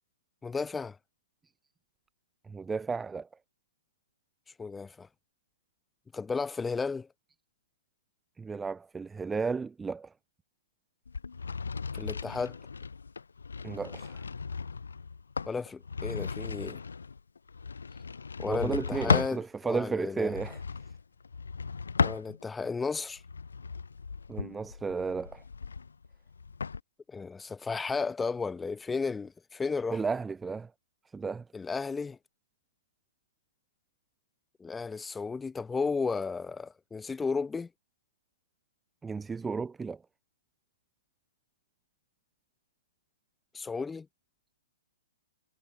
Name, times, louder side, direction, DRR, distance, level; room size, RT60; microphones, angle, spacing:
voice 1, 0.4-1.0 4.6-5.1 6.1-7.1 11.9-12.6 15.5-16.8 18.4-20.4 22.0-23.2 27.1-30.0 31.5-32.2 34.6-37.7 43.5-44.1, left 4 dB, 10° left, 0.8 m, -33 dB
voice 2, 2.4-3.3 8.4-10.1 13.6-14.2 18.5-20.6 24.3-25.4 29.9-30.7 31.1-31.5 39.0-40.0, right 4 dB, 10° right, 0.4 m, -33 dB
sound 1, 11.1-19.4 20.2-22.7 23.2-26.8, left 5 dB, 80° left, 0.3 m, -35 dB
figure-of-eight pair, 120°, 0 cm